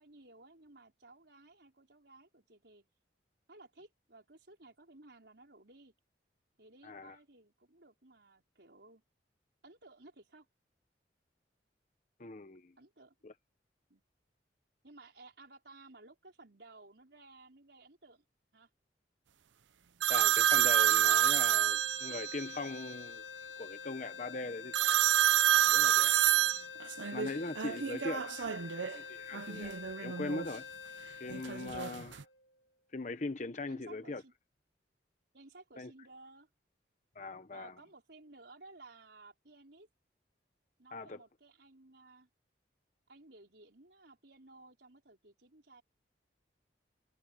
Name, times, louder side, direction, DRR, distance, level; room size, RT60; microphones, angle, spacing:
voice 1, 0.0-2.9 3.5-5.9 6.6-9.0 9.6-10.5 12.8-13.2 13.9-14.0 14.8-18.2 18.5-18.7 27.6-28.7 31.8-32.0 33.6-34.3 35.3-36.5 37.5-39.9 40.8-42.3 43.1-45.8, right 2 dB, 70° right, 4.5 m, -57 dB
voice 2, 6.8-7.1 12.2-12.7 13.2-13.3 20.1-23.2 23.6-25.0 25.5-26.1 27.1-28.5 28.9-29.8 30.0-30.7 31.2-32.2 32.9-34.2 35.8-35.9 37.2-37.7 40.9-41.2, left 3 dB, 40° left, 0.8 m, -40 dB
sound 1, 20.0-22.5 24.7-29.0 29.3-30.5 31.3-32.2, right 11 dB, 90° right, 0.6 m, -28 dB
sound 2, 20.4-32.7, left 7 dB, 70° left, 2.7 m, -47 dB
head